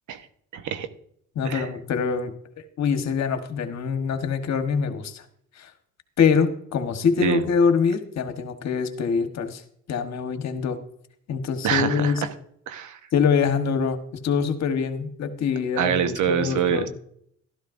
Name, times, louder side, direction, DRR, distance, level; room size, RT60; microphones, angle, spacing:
voice 1, 0.5-0.9 1.4-1.7 7.2-7.4 11.6-12.3 12.7-13.0 15.8-16.9, right 8 dB, 75° right, 9 dB, 1.0 m, -25 dB
voice 2, 1.3-2.3 2.8-5.2 5.6-5.7 6.2-9.6 9.9-10.8 11.3-12.2 13.1-16.9, left 6 dB, 60° left, 7 dB, 1.3 m, -24 dB
13.0 x 12.5 x 2.6 m, 0.68 s
cardioid pair, 90°, 30 cm